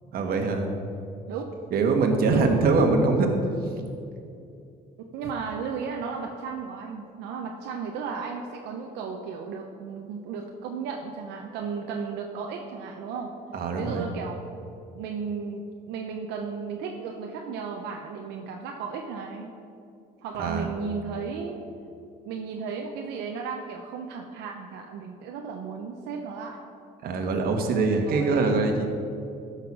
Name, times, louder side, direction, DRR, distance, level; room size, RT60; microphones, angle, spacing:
voice 1, 0.1-0.7 1.7-3.3 13.5-14.0 20.4-20.7 27.0-28.9, right 3 dB, 60° right, 4 dB, 1.5 m, -23 dB
voice 2, 5.0-13.3 13.7-14.5 14.9-19.6 20.2-21.6 22.3-26.6 28.1-28.6, right 5 dB, 85° right, 2 dB, 0.8 m, -34 dB
13.0 x 5.8 x 6.0 m, 2.5 s
cardioid pair, 110°, 17 cm